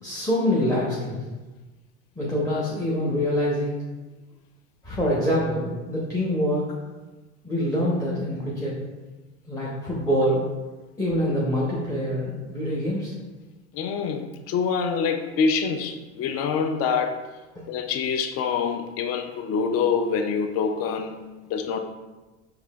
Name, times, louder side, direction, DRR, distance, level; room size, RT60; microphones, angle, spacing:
voice 1, 0.0-1.2 2.2-3.8 4.8-6.6 7.4-8.7 9.5-10.4 11.0-13.1, equal, 10° left, -6 dB, 0.7 m, -25 dB
voice 2, 13.7-17.2 17.7-21.8, left 5 dB, 45° left, 7 dB, 0.4 m, -26 dB
4.7 x 2.8 x 2.3 m, 1.2 s
hypercardioid pair, 100°, 35 cm